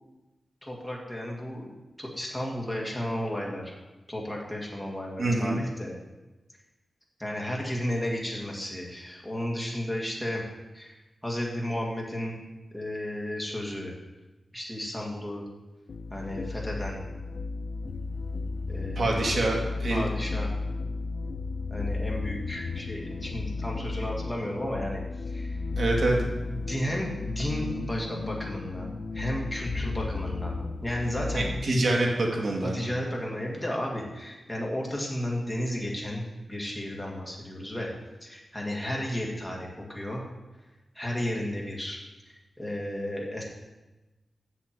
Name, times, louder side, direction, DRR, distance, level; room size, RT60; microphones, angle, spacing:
voice 1, 0.6-1.7 2.0-3.8 4.1-5.9 7.2-10.4 10.7-10.9 11.2-12.4 12.7-13.9 14.5-15.4 16.1-17.0 18.7-19.4 19.9-20.5 21.7-25.0 25.3-25.6 26.5-31.5 32.6-37.9 38.2-40.2 41.0-42.0 42.6-43.4, left 1 dB, 5° left, -3 dB, 2.0 m, -33 dB
voice 2, 5.2-5.6 19.0-20.1 25.8-26.2 31.3-32.8, right 2 dB, 60° right, 0 dB, 2.0 m, -26 dB
sound 1, 15.9-31.6, left 3 dB, 60° left, 0.5 m, -34 dB
7.3 x 7.0 x 7.4 m, 1.1 s
wide cardioid pair, 175°, 0 cm